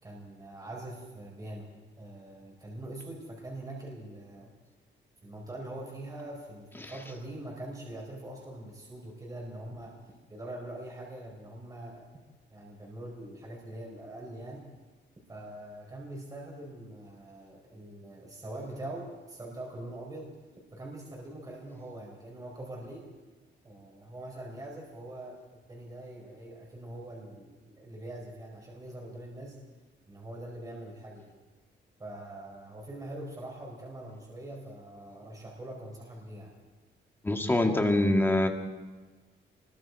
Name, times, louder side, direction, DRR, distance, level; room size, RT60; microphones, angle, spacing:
voice 1, 0.0-1.7 2.0-4.5 5.2-9.9 10.3-12.1 12.5-14.6 15.3-20.3 20.7-23.1 23.6-25.4 25.7-29.6 30.1-31.3 32.0-36.5, right 1 dB, 20° right, -2 dB, 4.4 m, -43 dB
voice 2, 37.2-38.5, left 1 dB, 10° left, 3 dB, 1.9 m, -24 dB
29.0 x 21.5 x 4.7 m, 1.2 s
wide cardioid pair, 170°, 19 cm